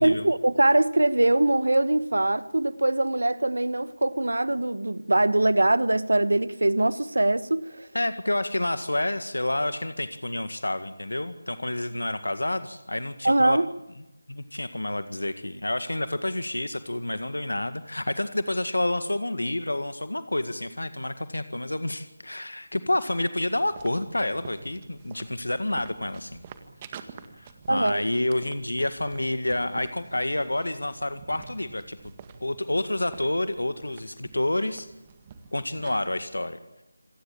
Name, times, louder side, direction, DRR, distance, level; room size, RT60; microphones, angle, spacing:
voice 1, 0.0-7.9 13.2-13.7 27.7-28.0, right 2 dB, 85° right, 1.3 m, -22 dB
voice 2, 7.9-13.6 14.3-26.4 27.3-32.0 32.4-34.9 35.5-36.6, left 1 dB, 90° left, 1.9 m, -29 dB
sound 1, 23.5-36.2, right 6 dB, 25° right, 1.9 m, -48 dB
27.5 x 16.0 x 8.7 m
figure-of-eight pair, 165°, 0 cm